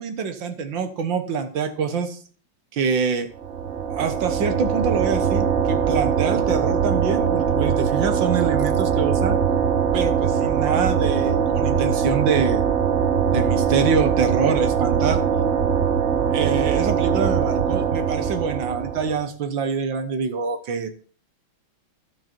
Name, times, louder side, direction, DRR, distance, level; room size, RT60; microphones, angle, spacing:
voice 1, 0.0-2.2 2.7-3.3 3.9-9.4 9.9-12.7 13.3-15.2 16.3-20.9, right 5 dB, 65° right, 8 dB, 1.9 m, -25 dB
sound 1, 3.4-19.2, right 7 dB, 50° right, 0.9 m, -22 dB
14.5 x 6.1 x 4.5 m, 0.41 s
omnidirectional pair, 2.2 m